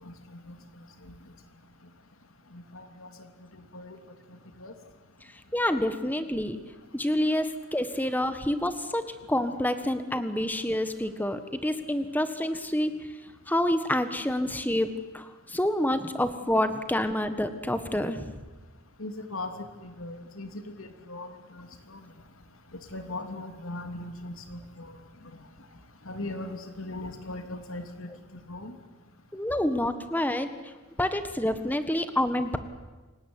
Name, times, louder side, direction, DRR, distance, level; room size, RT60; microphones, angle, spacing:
voice 1, 0.0-1.1 2.5-3.1 3.5-4.0 4.6-4.7 19.0-19.5 19.8-22.0 22.9-25.0 26.0-28.1 28.5-28.7, left 2 dB, 75° left, 6 dB, 3.1 m, -39 dB
voice 2, 5.5-6.6 6.9-13.0 13.5-18.4 29.3-30.5 31.0-32.6, left 1 dB, 10° left, 10 dB, 1.5 m, -28 dB
28.5 x 17.5 x 9.8 m, 1.3 s
head